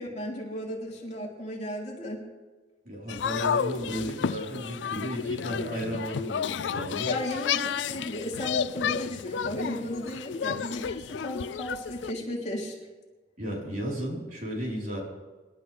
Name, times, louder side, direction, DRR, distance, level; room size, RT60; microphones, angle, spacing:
voice 1, 0.0-2.2 7.0-12.7, equal, 40° left, -3 dB, 3.2 m, -35 dB
voice 2, 2.8-7.1 13.4-15.0, equal, 50° right, -3 dB, 4.2 m, -34 dB
sound 1, 3.1-12.1, left 7 dB, 85° left, 0.4 m, -31 dB
26.0 x 12.0 x 3.4 m, 1.3 s
head